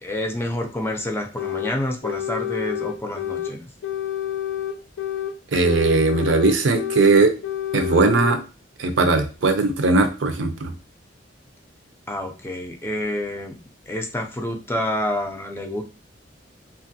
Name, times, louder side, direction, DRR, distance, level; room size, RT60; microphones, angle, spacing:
voice 1, 0.0-3.7 12.1-13.6 13.9-15.8, left 1 dB, 15° left, 3 dB, 0.4 m, -28 dB
sound 1, 1.4-1.8 2.0-3.5 3.8-5.4 5.6-7.2 7.4-8.4, left 10 dB, 90° left, 0.3 m, -28 dB
voice 2, 5.5-7.3 7.7-8.4 8.8-10.7, right 3 dB, 90° right, 6 dB, 0.5 m, -19 dB
3.1 x 2.4 x 2.6 m, 0.32 s
head